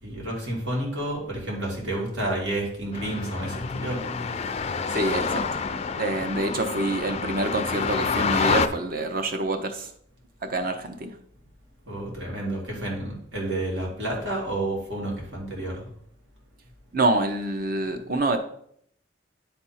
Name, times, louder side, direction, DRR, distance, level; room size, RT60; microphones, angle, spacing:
voice 1, 0.0-4.0 11.9-15.9, right 1 dB, 80° right, -3 dB, 2.6 m, -30 dB
sound 1, 2.9-8.7, left 5 dB, 35° left, 0.4 m, -28 dB
voice 2, 4.9-5.6 6.0-9.9 10.4-11.2 16.9-18.4, right 2 dB, 50° right, 7 dB, 0.8 m, -26 dB
9.8 x 3.5 x 4.3 m, 0.66 s
head